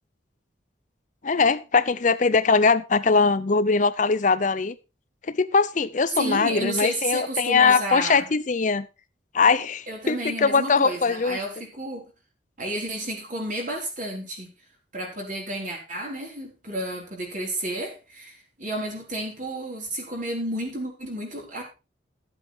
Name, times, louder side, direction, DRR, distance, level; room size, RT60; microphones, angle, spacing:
voice 1, 1.2-4.7 5.3-8.9 9.3-11.4, left 4 dB, 40° left, 0.6 m, -21 dB
voice 2, 6.1-8.2 9.9-12.1 12.6-14.5 14.9-21.6, right 1 dB, 45° right, 4.8 m, -31 dB
13.5 x 8.1 x 4.5 m
head